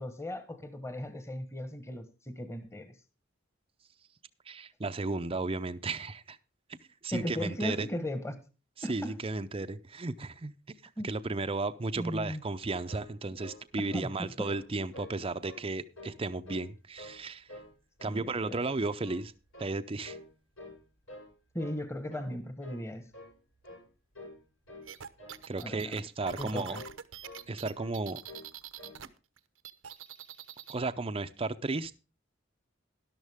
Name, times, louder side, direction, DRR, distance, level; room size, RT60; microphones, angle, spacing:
voice 1, 0.0-2.9 7.1-8.4 8.8-9.1 11.0-11.1 12.0-12.4 13.9-14.5 18.1-18.6 21.5-23.1 25.6-26.0 26.4-26.8, left 1 dB, 15° left, 1.3 m, -37 dB
voice 2, 4.5-6.4 7.0-7.9 8.8-10.5 11.0-17.5 18.0-19.3 19.6-20.2 25.5-26.8 27.5-28.2 30.7-31.9, right 3 dB, 30° right, 0.6 m, -34 dB
sound 1, 12.6-14.2 14.4-14.7 14.9-15.6 15.9-16.7 17.0-17.7 18.0-18.2 18.5-19.3 19.5-19.8 20.0-20.3 20.6-21.3 21.6-21.8 22.1-22.3 22.6-22.9 23.1-23.4 23.6-23.9 24.1-24.4 24.6-24.9 25.2-25.4 25.7-25.9 26.2-26.4 26.7-27.5 27.7-28.0 28.2-28.5 28.8-29.0, left 1 dB, 85° left, 7.7 m, -48 dB
sound 2, 24.9-29.1 29.4-30.8, right 8 dB, 85° right, 0.9 m, -45 dB
13.0 x 11.5 x 3.5 m
head